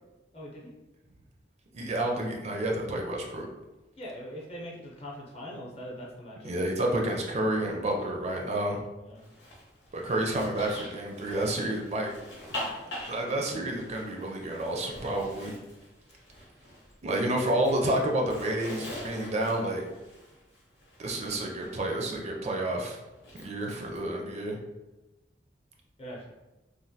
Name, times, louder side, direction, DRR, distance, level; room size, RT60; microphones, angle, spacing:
voice 1, 0.3-0.8 4.0-6.5 9.0-9.3 26.0-26.3, equal, 35° left, -4 dB, 0.7 m, -42 dB
voice 2, 1.7-3.5 6.4-8.8 9.9-12.1 13.1-15.5 17.0-19.8 21.0-23.0 23.4-24.6, right 1 dB, 40° right, 0 dB, 0.4 m, -30 dB
Zipper (clothing), 9.2-17.0 17.3-21.7 23.2-24.0, left 1 dB, 85° left, 0.9 m, -44 dB
3.1 x 2.1 x 2.7 m, 1.1 s
head